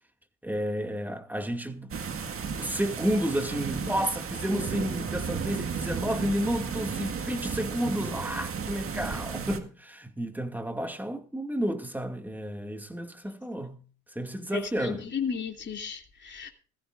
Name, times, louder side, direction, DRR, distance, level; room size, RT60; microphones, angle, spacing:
voice 1, 0.4-2.0 2.6-13.8 14.1-15.1, equal, 5° right, 2.3 m, -31 dB
sound 1, 1.9-9.6, right 6 dB, 40° right, 1.8 m, -34 dB
voice 2, 14.5-16.5, left 6 dB, 35° left, 2.9 m, -34 dB
18.5 x 15.0 x 2.6 m
supercardioid pair, 80°, 33 cm